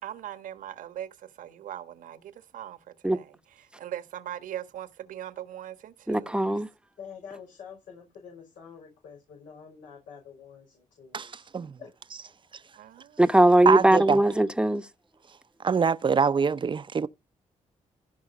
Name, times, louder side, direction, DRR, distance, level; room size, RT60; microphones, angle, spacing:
voice 1, 0.0-6.5 12.8-13.2, right 11 dB, 85° right, 1.5 m, -40 dB
voice 2, 6.1-6.7 13.2-14.8, right 1 dB, 5° right, 1.0 m, -20 dB
voice 3, 7.0-11.5 11.8-11.9, left 7 dB, 85° left, 5.4 m, -47 dB
voice 4, 11.1-11.8 12.5-12.6 13.7-14.2 15.3-17.1, right 6 dB, 35° right, 0.7 m, -25 dB
15.0 x 5.7 x 5.2 m
cardioid pair, 75°, 13 cm